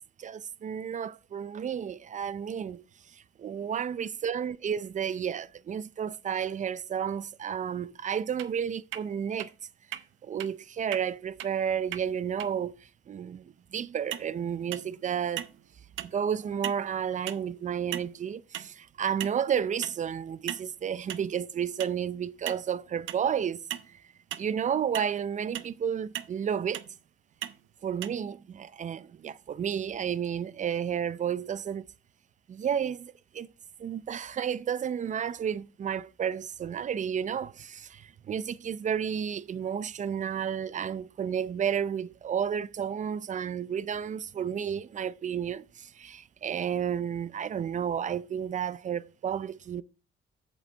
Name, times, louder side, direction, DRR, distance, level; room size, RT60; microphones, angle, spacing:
voice 1, 0.2-2.8 3.1-9.5 10.2-15.5 16.0-23.6 24.4-26.8 27.8-31.9 32.5-33.5 33.8-49.8, right 8 dB, 40° right, 0.5 m, -32 dB
sound 1, 8.4-8.5 8.9-9.0 9.4-9.5 9.9-10.0 10.4-10.5 10.9-11.0 11.4-11.5 11.9-12.0 12.4-12.5 14.1-14.3 14.7-15.0 15.4-15.6 16.0-16.2 16.6-16.9 17.3-17.4 17.9-18.2 18.5-18.7 19.2-19.5 19.8-20.0 20.5-20.7 21.1-21.3 21.8-22.0 22.5-22.6 23.1-23.3 23.7-23.9 24.3-24.5 24.9-25.1 25.5-25.7 26.1-26.4 26.7-26.9 27.4-27.6 28.0-28.1, right 12 dB, 85° right, 0.6 m, -37 dB
7.9 x 7.4 x 3.3 m
cardioid pair, 90°, 20 cm